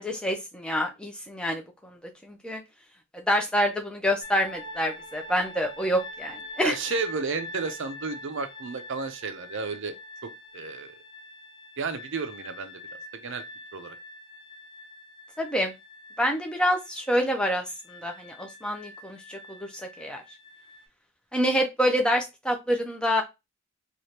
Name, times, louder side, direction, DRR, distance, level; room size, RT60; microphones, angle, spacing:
voice 1, 0.0-2.6 3.1-6.7 15.4-15.7 16.2-19.7 20.0-20.2 21.3-23.2, equal, 5° left, 0.5 m, -27 dB
sound 1, 4.2-20.8, left 1 dB, 40° left, 0.8 m, -44 dB
voice 2, 6.6-9.9 10.5-11.0 11.8-12.8 13.2-13.4 13.7-13.9, right 4 dB, 55° right, 0.5 m, -32 dB
3.2 x 2.5 x 2.8 m
head